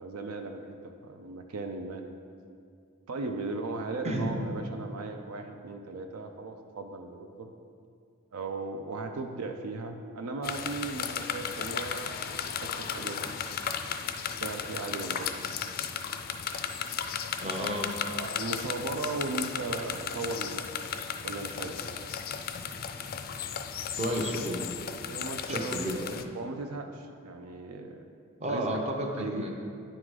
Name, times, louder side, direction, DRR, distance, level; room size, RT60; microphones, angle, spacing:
voice 1, 0.0-2.0 3.1-7.5 8.3-13.4 14.4-15.5 18.1-20.7 21.2-21.8 25.0-26.0 26.3-28.1 28.5-28.8 29.2-29.5, right 3 dB, 80° right, 5 dB, 0.5 m, -37 dB
sound 1, 10.4-26.2, left 7 dB, 45° left, 0.3 m, -35 dB
voice 2, 17.4-17.9 24.0-24.6 25.5-26.0 28.4-29.5, right 1 dB, 30° right, 1 dB, 0.7 m, -31 dB
9.8 x 3.8 x 4.7 m, 2.4 s
head